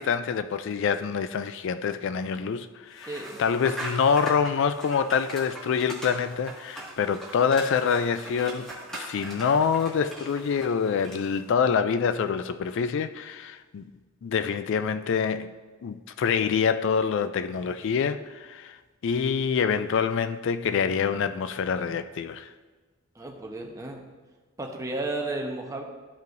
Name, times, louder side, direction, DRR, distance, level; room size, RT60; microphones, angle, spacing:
voice 1, 0.0-13.8 14.2-15.5 15.8-18.8 19.0-22.5, left 6 dB, 60° left, 0.3 m, -26 dB
sound 1, 2.9-11.4, right 2 dB, 5° left, 1.8 m, -41 dB
voice 2, 3.1-3.4 23.1-24.0 24.6-25.8, right 2 dB, 15° right, 0.9 m, -33 dB
12.5 x 5.4 x 2.6 m
head